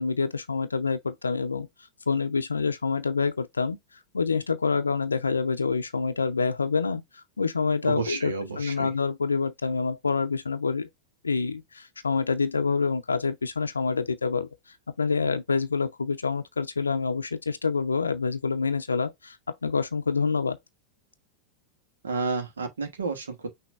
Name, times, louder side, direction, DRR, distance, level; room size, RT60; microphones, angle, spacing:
voice 1, 0.0-1.7 2.1-3.8 4.1-10.9 11.2-14.5 15.0-19.4 19.6-20.6, left 4 dB, 75° left, 0.5 m, -27 dB
voice 2, 7.8-8.9 22.0-23.5, right 4 dB, 70° right, 1.1 m, -31 dB
6.0 x 2.5 x 3.5 m
figure-of-eight pair, 90°, 0 cm